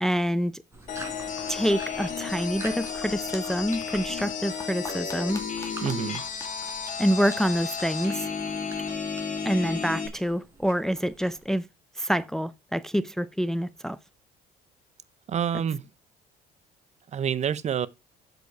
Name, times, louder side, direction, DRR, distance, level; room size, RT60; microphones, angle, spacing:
voice 1, 0.0-0.6 1.5-5.4 7.0-8.3 9.4-11.7 12.0-14.0, equal, 5° left, 0.5 m, -27 dB
sound 1, 0.7-11.6, right 2 dB, 15° right, 4.4 m, -46 dB
sound 2, 0.9-10.1, left 6 dB, 50° left, 2.8 m, -33 dB
sound 3, 2.7-7.8, left 3 dB, 20° left, 2.3 m, -47 dB
voice 2, 5.8-6.2 15.3-15.8 17.1-17.9, right 8 dB, 40° right, 0.7 m, -27 dB
8.0 x 6.7 x 4.6 m
cardioid pair, 110°, 17 cm